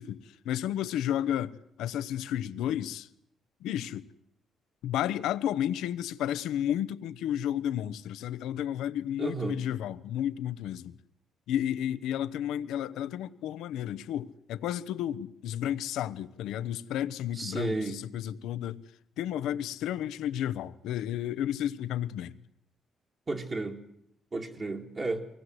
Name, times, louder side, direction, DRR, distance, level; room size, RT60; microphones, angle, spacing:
voice 1, 0.0-3.1 3.6-4.1 4.8-11.0 11.5-18.8 19.2-22.4, left 11 dB, 85° left, 0.9 m, -32 dB
voice 2, 9.2-9.6 17.4-18.0 23.3-23.8 24.3-25.3, right 3 dB, 35° right, 2.3 m, -33 dB
24.0 x 19.0 x 7.9 m
cardioid pair, 90°, 0 cm